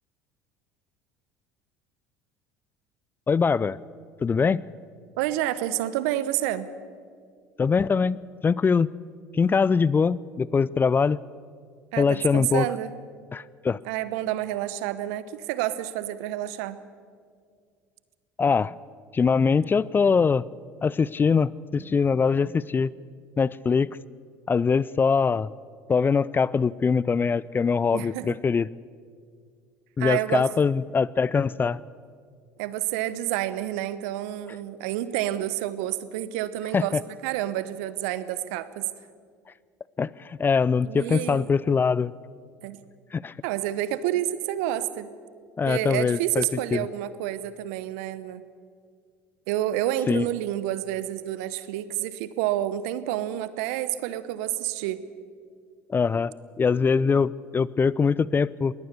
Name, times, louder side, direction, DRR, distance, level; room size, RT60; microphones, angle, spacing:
voice 1, 3.3-3.8 4.2-4.6 7.6-8.9 9.3-11.2 12.0-12.7 13.3-13.8 18.4-18.8 19.1-20.5 20.8-22.9 23.4-23.9 24.5-25.5 25.9-28.7 30.0-31.8 36.7-37.0 40.0-42.1 43.1-43.3 45.6-46.9 50.1-50.2 55.9-58.7, left 5 dB, 25° left, 21 dB, 0.4 m, -23 dB
voice 2, 5.2-6.7 11.9-12.9 13.8-16.8 27.9-28.4 30.0-30.4 32.6-37.0 37.2-38.9 40.9-41.5 42.6-42.8 43.4-45.1 45.7-48.4 49.5-55.0, right 13 dB, 70° right, 15 dB, 1.0 m, -29 dB
21.5 x 18.0 x 6.9 m, 2.1 s
hypercardioid pair, 70°, 8 cm